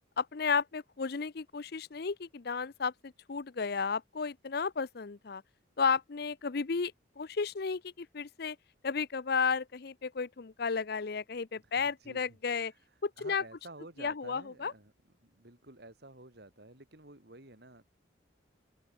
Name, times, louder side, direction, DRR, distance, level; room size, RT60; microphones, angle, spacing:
voice 1, 0.2-5.4 5.8-8.6 8.8-12.7 13.0-13.4 14.0-14.7, left 5 dB, 55° left, 0.6 m, -33 dB
voice 2, 11.6-14.9 15.2-17.8, right 2 dB, 60° right, 3.3 m, -52 dB
open air
head